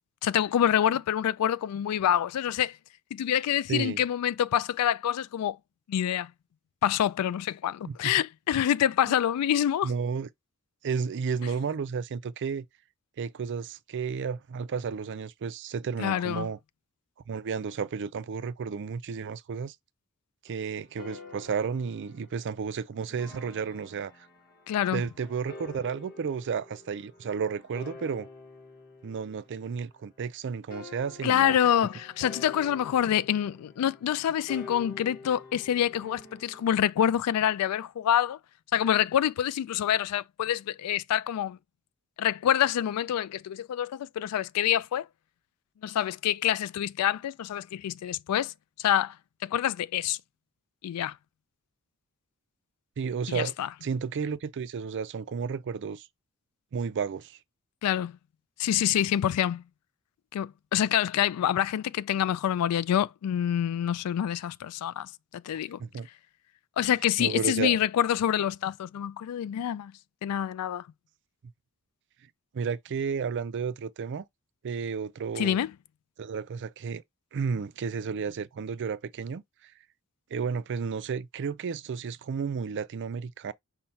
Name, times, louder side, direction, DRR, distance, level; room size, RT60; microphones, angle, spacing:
voice 1, 0.2-2.8 3.1-5.6 5.9-6.3 6.8-9.9 16.0-16.5 24.7-25.0 31.2-38.4 38.7-41.6 42.2-45.1 45.8-48.5 48.8-49.1 49.4-50.2 50.8-51.1 53.3-53.7 57.8-58.2 58.6-59.6 60.3-65.8 66.8-69.9 70.2-70.8 75.4-75.7, left 10 dB, 85° left, 0.3 m, -26 dB
voice 2, 3.7-4.0 7.9-8.1 9.1-9.2 9.8-10.3 10.8-12.7 13.2-16.6 17.3-19.8 20.4-24.1 24.9-28.3 29.0-31.6 53.0-53.5 53.8-56.1 56.7-57.4 65.8-66.1 67.2-67.8 72.5-74.2 74.6-75.6 76.2-77.0 77.3-79.7 80.3-83.5, right 6 dB, 55° right, 0.4 m, -32 dB
sound 1, 20.5-30.1 30.7-36.7, left 3 dB, 45° left, 1.0 m, -48 dB
5.5 x 2.2 x 4.3 m
head